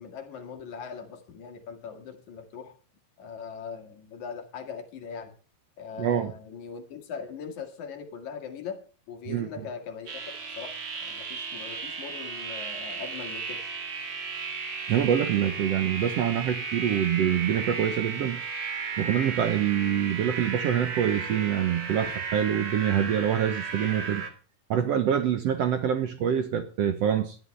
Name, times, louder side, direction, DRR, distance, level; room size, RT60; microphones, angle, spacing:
voice 1, 0.0-2.7 3.2-5.3 5.8-8.8 9.1-13.6 22.0-22.1, left 6 dB, 65° left, 3.2 m, -40 dB
voice 2, 6.0-6.3 9.3-9.5 14.9-18.4 19.0-24.2 24.7-27.4, right 9 dB, 65° right, 1.7 m, -25 dB
sound 1, 10.1-24.3, right 5 dB, 45° right, 2.7 m, -35 dB
19.5 x 11.5 x 3.3 m
omnidirectional pair, 3.8 m